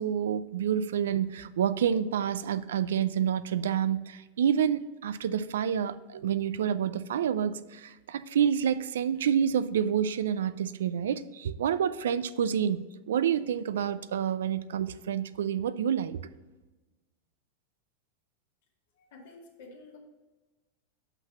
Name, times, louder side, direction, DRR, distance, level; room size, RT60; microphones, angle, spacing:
voice 1, 0.0-16.2, right 8 dB, 90° right, 0.4 m, -28 dB
voice 2, 19.0-20.0, left 3 dB, 80° left, 2.1 m, -50 dB
5.9 x 5.8 x 5.5 m
supercardioid pair, 130°, 0 cm